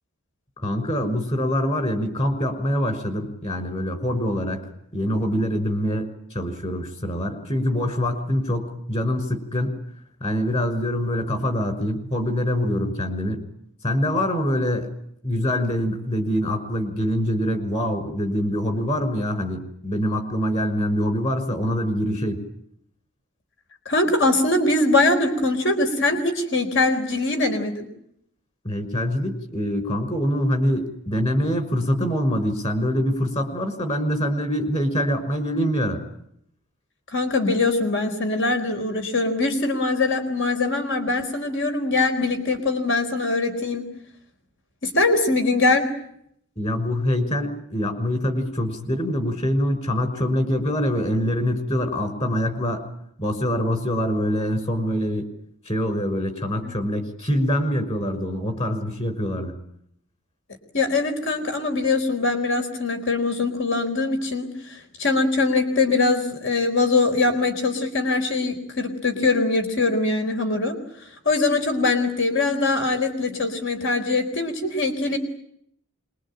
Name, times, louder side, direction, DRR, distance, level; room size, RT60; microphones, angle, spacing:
voice 1, 0.6-4.6 4.9-9.8 10.2-13.4 13.8-14.9 15.2-22.4 28.6-36.0 46.6-52.9 53.2-55.3 55.7-59.5, equal, 30° left, 8 dB, 5.7 m, -24 dB
voice 2, 23.9-27.9 37.1-43.8 44.8-45.9 56.6-56.7 60.7-70.8 71.3-75.2, left 3 dB, 55° left, 6 dB, 4.3 m, -22 dB
26.5 x 23.0 x 9.0 m, 0.72 s
head